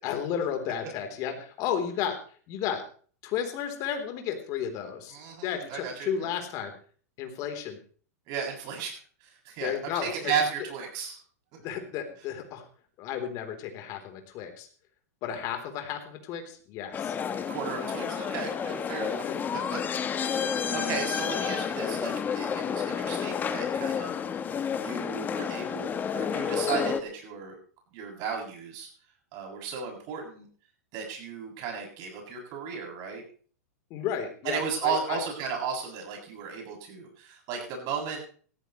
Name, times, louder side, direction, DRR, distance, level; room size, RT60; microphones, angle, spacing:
voice 1, 0.0-2.2 2.5-2.8 3.2-5.2 5.4-6.7 7.2-7.8 9.6-10.4 11.6-12.7 13.0-14.7 15.2-17.2 19.2-19.6 21.3-21.4 33.9-35.2, left 8 dB, 40° left, 5 dB, 3.6 m, -33 dB
voice 2, 5.1-6.3 8.3-11.2 17.5-19.8 20.3-24.2 24.8-27.6 27.9-28.9 29.3-30.5 30.9-33.2 34.4-38.3, right 6 dB, 45° right, 1 dB, 7.4 m, -35 dB
sound 1, 16.9-27.0, left 7 dB, 20° left, 1.1 m, -30 dB
17.5 x 14.5 x 3.2 m, 0.43 s
hypercardioid pair, 130°, 9 cm